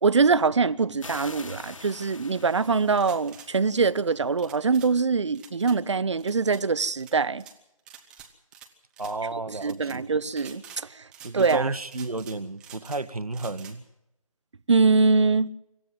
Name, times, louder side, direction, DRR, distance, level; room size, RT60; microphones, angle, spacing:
voice 1, 0.0-7.4 9.5-11.0 11.3-11.7 14.7-15.5, right 4 dB, 50° right, 0.8 m, -23 dB
sound 1, 1.0-4.3, left 3 dB, 60° left, 3.2 m, -45 dB
sound 2, 2.9-3.5 4.4-4.9 5.3-5.8 6.2-6.6 7.0-7.6 7.9-8.7 8.9-9.2 9.6-10.0 10.3-10.8 11.1-11.6 11.9-13.0 13.3-13.8, right 8 dB, 5° right, 0.7 m, -48 dB
voice 2, 9.0-10.2 11.2-13.8, right 3 dB, 80° right, 1.2 m, -32 dB
25.5 x 14.5 x 7.6 m
figure-of-eight pair, 155°, 19 cm